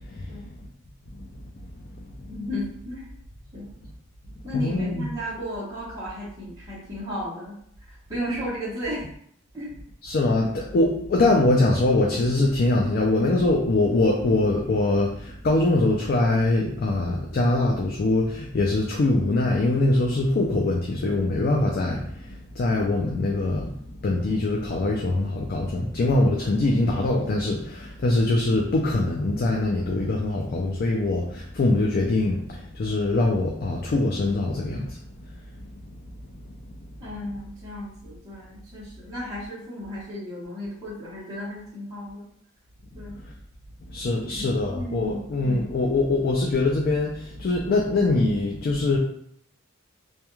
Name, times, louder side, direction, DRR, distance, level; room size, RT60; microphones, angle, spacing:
voice 1, 0.1-0.4 1.2-1.3 2.0-2.1 4.5-5.1 10.0-23.7 24.0-35.0 36.7-36.8 43.9-49.0, left 2 dB, 45° left, -1 dB, 0.3 m, -23 dB
voice 2, 2.3-3.1 3.5-3.7 4.4-9.1 9.5-9.7 14.2-14.4 37.0-42.2 42.9-43.2 44.3-45.3, equal, 20° right, -10 dB, 0.8 m, -34 dB
2.3 x 2.2 x 3.0 m, 0.67 s
head